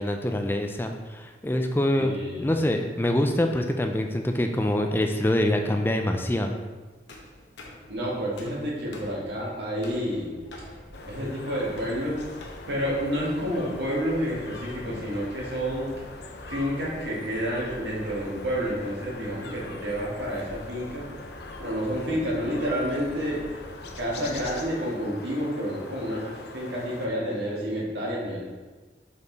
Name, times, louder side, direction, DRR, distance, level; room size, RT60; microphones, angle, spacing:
voice 1, 0.0-2.1 2.4-6.6 21.9-22.1, left 1 dB, 10° left, 4 dB, 0.4 m, -25 dB
voice 2, 2.0-2.5 7.9-10.4 11.1-12.2 12.7-15.9 16.5-21.1 21.6-23.4 24.0-28.4, equal, 75° right, -5 dB, 1.9 m, -29 dB
sound 1, 7.1-12.4, left 2 dB, 90° left, 1.1 m, -47 dB
sound 2, 10.4-24.7, equal, 20° right, 0.7 m, -48 dB
sound 3, 10.9-27.1, left 3 dB, 70° left, 0.6 m, -42 dB
5.3 x 4.8 x 3.9 m, 1.3 s
head